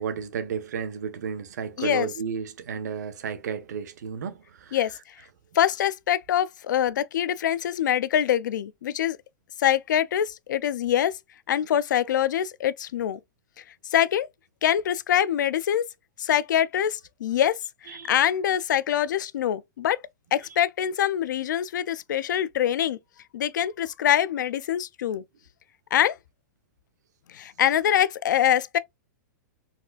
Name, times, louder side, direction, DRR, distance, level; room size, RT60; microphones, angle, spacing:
voice 1, 0.0-4.8 17.9-18.1, right 7 dB, 70° right, 0.7 m, -33 dB
voice 2, 5.5-9.2 9.6-11.1 11.5-13.2 13.9-14.3 14.6-15.9 16.2-17.6 17.8-20.0 20.3-23.0 23.3-25.2 25.9-26.2 27.3-28.8, left 10 dB, 85° left, 0.4 m, -24 dB
4.2 x 2.4 x 2.2 m
supercardioid pair, 180°, 10 cm